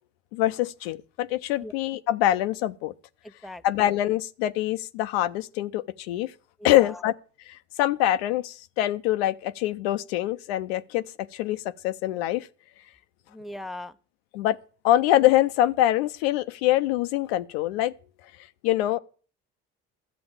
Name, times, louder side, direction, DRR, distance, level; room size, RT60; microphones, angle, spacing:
voice 1, 0.3-2.9 3.6-6.3 6.6-7.1 7.5-12.5 14.3-14.6 14.8-17.9 18.6-19.0, left 14 dB, 85° left, 0.6 m, -24 dB
voice 2, 3.2-3.6 6.6-7.0 13.3-14.0, left 1 dB, ahead, 0.5 m, -39 dB
12.0 x 7.7 x 7.1 m
hypercardioid pair, 70°, 30 cm